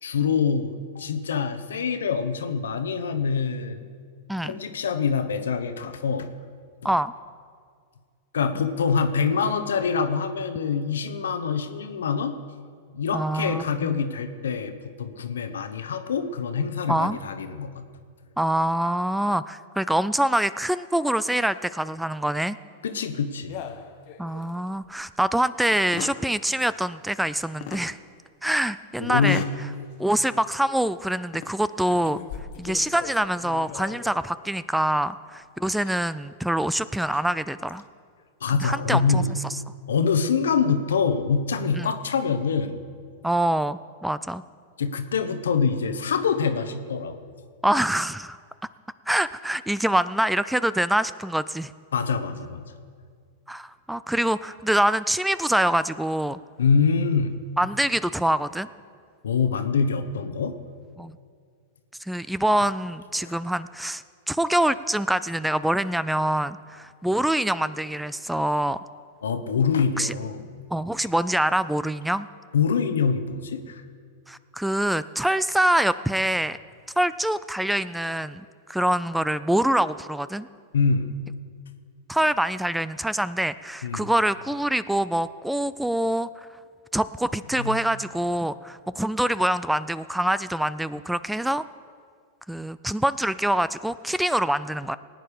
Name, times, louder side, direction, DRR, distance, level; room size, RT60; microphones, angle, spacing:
voice 1, 0.0-3.8 4.4-6.3 8.3-12.4 12.9-17.8 22.8-23.5 29.0-29.5 38.4-39.3 39.9-42.8 44.8-47.2 51.9-52.6 56.6-57.3 59.2-60.6 63.2-63.3 69.2-70.4 72.5-73.8 80.7-81.2 83.8-84.1 87.6-87.8, left 5 dB, 80° left, 10 dB, 0.9 m, -25 dB
voice 2, 13.1-14.0 16.9-17.2 18.4-22.6 24.2-28.0 28.4-29.4 30.0-32.2 32.6-37.8 38.5-39.2 40.2-40.3 41.8-41.9 43.2-44.4 47.6-48.4 49.1-51.7 53.5-56.4 57.6-58.7 61.0-61.2 62.0-68.8 70.0-70.1 70.7-72.3 74.3-76.6 77.0-80.5 82.1-86.3 86.9-91.6 92.5-95.0, right 1 dB, 5° right, 16 dB, 0.3 m, -25 dB
sound 1, 23.5-24.6 25.0-25.1 25.7-26.3 27.6-27.9 29.1-29.6 30.1-30.3 31.2-31.5 31.9-34.2 35.7-35.9 36.9-37.2, left 9 dB, 55° left, 1.0 m, -38 dB
18.5 x 9.2 x 5.1 m, 2.1 s
hypercardioid pair, 105°, 0 cm